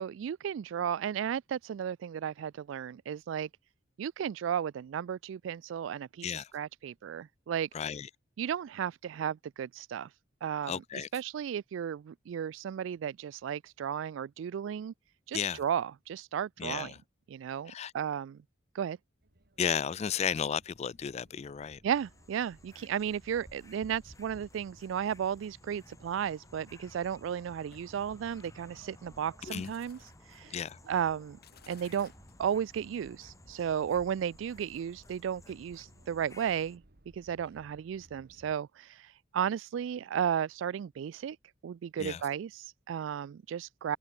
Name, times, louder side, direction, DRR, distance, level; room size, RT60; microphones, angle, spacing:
voice 1, 0.0-3.5 4.0-7.7 8.4-10.1 10.4-14.9 15.3-16.9 17.3-18.4 18.7-19.0 21.8-30.0 30.3-30.6 30.9-31.4 31.7-32.1 32.4-36.8 37.1-41.4 41.6-44.0, right 8 dB, 75° right, 0.3 m, -34 dB
voice 2, 7.7-8.1 10.7-11.1 15.3-15.6 16.6-17.0 17.7-17.9 19.6-21.8 29.4-29.7 30.5-30.8 42.0-42.2, left 7 dB, 35° left, 0.3 m, -33 dB
sound 1, 19.2-38.5, right 1 dB, 55° right, 2.0 m, -61 dB
sound 2, 21.9-36.8, left 1 dB, 15° left, 1.5 m, -57 dB
sound 3, 27.7-33.4, left 6 dB, 55° left, 2.1 m, -61 dB
head